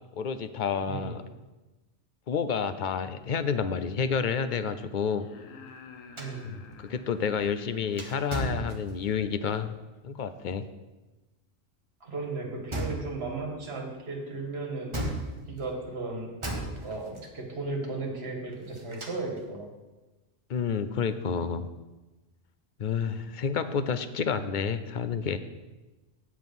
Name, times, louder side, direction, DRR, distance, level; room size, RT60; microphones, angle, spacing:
voice 1, 0.2-1.2 2.3-5.3 6.4-6.6 6.9-9.7 10.0-10.6 20.5-21.7 22.8-25.4, left 6 dB, 55° left, 11 dB, 0.5 m, -29 dB
sound 1, 5.0-7.9 9.9-10.0, left 5 dB, 80° left, 1.3 m, -50 dB
sound 2, 6.2-9.3 12.7-13.4 14.9-15.8 16.4-17.3 18.5-19.4, right 1 dB, 25° right, 1.3 m, -36 dB
voice 2, 6.2-6.5 12.0-14.9 15.5-19.7, right 3 dB, 50° right, 1 dB, 1.9 m, -35 dB
8.8 x 7.7 x 5.4 m, 1.1 s
omnidirectional pair, 1.4 m